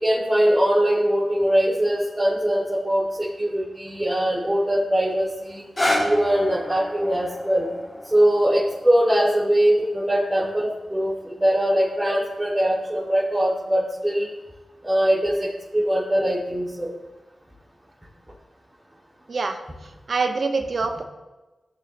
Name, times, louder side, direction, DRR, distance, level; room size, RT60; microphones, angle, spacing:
voice 1, 0.0-5.6 6.0-7.7 8.1-14.3 14.8-16.9, equal, 15° right, -7 dB, 3.4 m, -22 dB
sound 1, 5.5-11.6 12.3-12.4, left 1 dB, 30° left, 3.0 m, -31 dB
voice 2, 20.1-21.0, right 4 dB, 65° right, 5 dB, 1.0 m, -24 dB
16.5 x 6.5 x 3.4 m, 1.1 s
cardioid pair, 45°, 0 cm